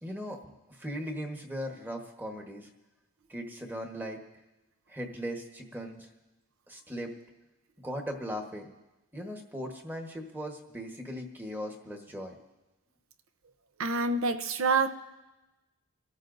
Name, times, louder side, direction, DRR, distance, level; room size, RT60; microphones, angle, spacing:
voice 1, 0.0-2.7 3.3-4.2 4.9-6.1 6.7-7.1 7.8-8.7 9.1-12.3, equal, 10° right, 2 dB, 1.2 m, -38 dB
voice 2, 13.8-14.9, right 4 dB, 70° right, 10 dB, 0.7 m, -26 dB
28.0 x 13.5 x 2.6 m, 1.1 s
head